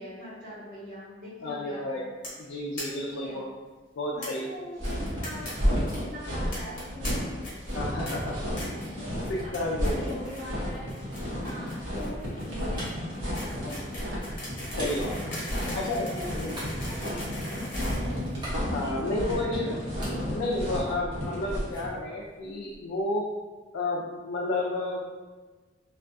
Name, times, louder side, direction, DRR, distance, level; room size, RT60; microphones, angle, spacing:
voice 1, 0.0-2.1 2.9-3.4 4.1-7.4 8.9-10.9 11.3-13.8 15.4-16.4 16.8-17.3 17.8-18.3 19.3-19.8, equal, 45° right, -11 dB, 1.1 m, -42 dB
voice 2, 1.4-2.1 2.4-3.5 4.0-4.5 7.7-8.4 9.3-10.0 13.6-13.8 14.8-15.4 15.7-16.6 18.7-19.8 20.3-23.3 23.7-25.1, left 2 dB, 90° left, -4 dB, 0.3 m, -31 dB
sound 1, 2.2-2.4 2.8-2.9 3.1-3.2 3.4-3.5 4.2-4.3 4.8-5.5 5.8-6.0 6.5-7.1 7.4-7.7 8.1-8.2 8.6-8.9 9.2-9.6 9.8-10.4 10.7-18.8, left 1 dB, 45° left, 0.9 m, -40 dB
sound 2, 4.8-21.9, equal, 80° right, 0.9 m, -32 dB
sound 3, 5.8-8.5 9.4-16.0 16.4-19.5 19.8-21.4 21.7-23.0, equal, 25° right, 0.7 m, -47 dB
2.3 x 2.2 x 2.5 m, 1.3 s
head